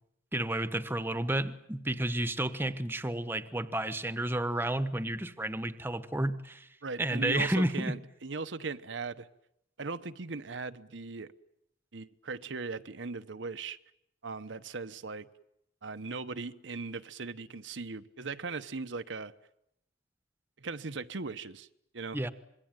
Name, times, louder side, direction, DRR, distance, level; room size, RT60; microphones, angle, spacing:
voice 1, 0.3-6.7 7.0-7.9 22.1-22.3, right 1 dB, 10° right, 1.2 m, -31 dB
voice 2, 6.8-9.3 9.8-11.3 11.9-13.8 14.2-15.3 15.8-19.3 20.6-21.7 21.9-22.2, right 4 dB, 75° right, 1.0 m, -38 dB
26.0 x 22.0 x 9.1 m
head